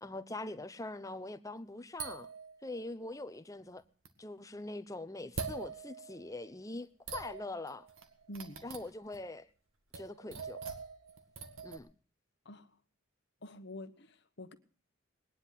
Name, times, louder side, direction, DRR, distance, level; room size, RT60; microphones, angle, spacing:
voice 1, 0.0-2.3 2.6-3.8 4.2-7.9 8.6-9.5 9.9-10.6 11.6-11.9, left 2 dB, 15° left, 0.7 m, -43 dB
sound 1, 2.0-3.1 4.0-4.1 5.4-6.5 7.1-9.2 9.9-11.8, right 5 dB, 75° right, 1.7 m, -44 dB
voice 2, 8.3-8.6 12.4-12.8 13.4-14.5, left 1 dB, 55° left, 1.2 m, -47 dB
20.0 x 10.0 x 5.7 m
head